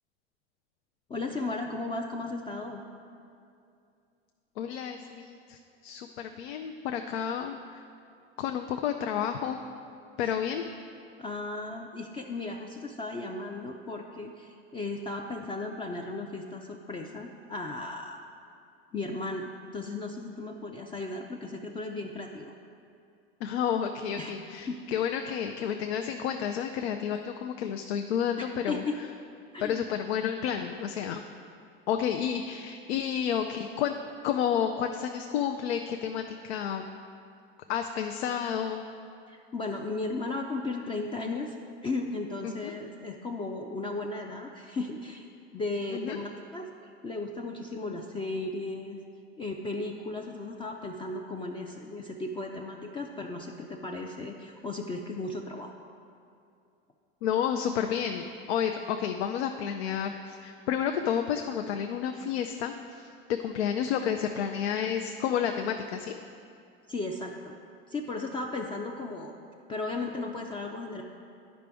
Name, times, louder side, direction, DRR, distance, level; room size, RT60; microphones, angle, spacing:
voice 1, 1.1-2.8 11.2-18.2 18.9-22.5 24.2-24.3 24.7-24.8 28.4-28.9 29.5-29.8 39.3-41.6 41.8-45.3 45.5-46.7 47.0-49.0 49.4-55.7 66.9-67.5 67.9-69.3 69.7-71.0, left 2 dB, 15° left, 1 dB, 0.4 m, -35 dB
voice 2, 4.6-7.8 8.4-9.6 10.2-10.7 23.4-28.8 29.6-31.2 31.9-33.9 34.2-36.9 37.7-38.9 42.4-42.7 45.9-46.2 57.2-66.2, left 8 dB, 85° left, 5 dB, 0.5 m, -31 dB
10.5 x 5.1 x 3.4 m, 2.5 s
hypercardioid pair, 105°, 31 cm